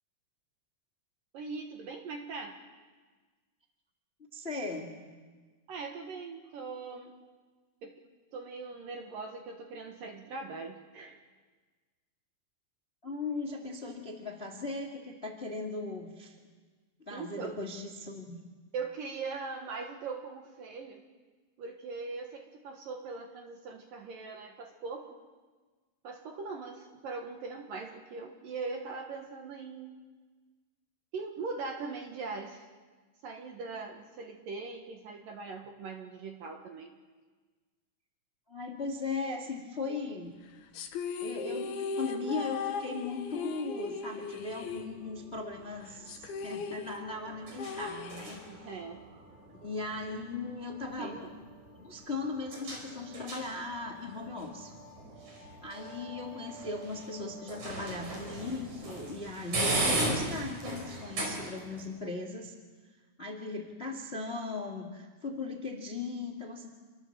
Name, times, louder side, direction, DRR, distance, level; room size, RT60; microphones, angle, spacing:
voice 1, 1.3-2.6 5.7-7.2 7.8-8.0 8.3-11.2 17.1-17.6 18.7-21.0 21.6-25.2 26.0-30.0 31.1-32.7 33.2-36.9 48.5-49.0 51.0-51.4, right 4 dB, 60° right, 3 dB, 2.6 m, -41 dB
voice 2, 4.3-4.9 13.0-16.3 17.0-18.4 38.5-40.3 41.2-48.7 49.5-51.2 51.7-54.7 55.6-62.5 63.2-66.7, left 3 dB, 25° left, 1 dB, 1.3 m, -38 dB
sound 1, 40.7-45.4 45.7-45.8 46.1-48.7, left 5 dB, 65° left, 2.9 m, -38 dB
sound 2, 44.4-61.8, right 2 dB, 40° right, 5.8 m, -38 dB
28.0 x 23.5 x 7.5 m, 1.4 s
omnidirectional pair, 5.4 m